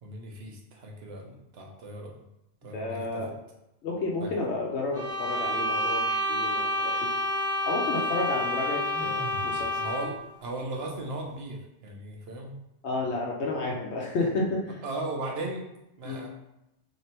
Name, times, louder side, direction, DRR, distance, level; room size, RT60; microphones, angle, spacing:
voice 1, 0.0-2.2 2.6-3.3 4.2-4.3 9.8-12.5 14.8-15.6 16.0-16.3, right 2 dB, 65° right, 0 dB, 1.0 m, -37 dB
voice 2, 2.7-3.3 3.8-7.0 7.6-9.7 12.8-14.6 16.0-16.2, left 2 dB, 75° left, -2 dB, 0.9 m, -31 dB
sound 1, 4.9-10.2, left 1 dB, 20° right, 0.4 m, -29 dB
sound 2, 8.9-9.8, right 2 dB, 10° left, 0.9 m, -40 dB
3.1 x 2.9 x 4.3 m, 0.89 s
omnidirectional pair, 1.2 m